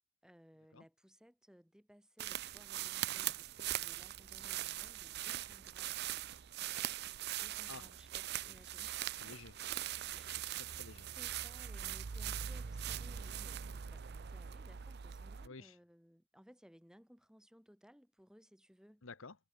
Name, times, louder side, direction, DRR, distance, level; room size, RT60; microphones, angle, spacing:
voice 1, 0.2-6.1 7.3-9.2 11.0-19.1, equal, 5° right, 3.3 m, -62 dB
sound 1, 2.2-15.5, right 11 dB, 50° right, 0.5 m, -41 dB
voice 2, 8.4-8.9 9.1-9.6 10.1-11.1 15.4-15.8 19.0-19.4, left 4 dB, 65° left, 1.2 m, -53 dB
head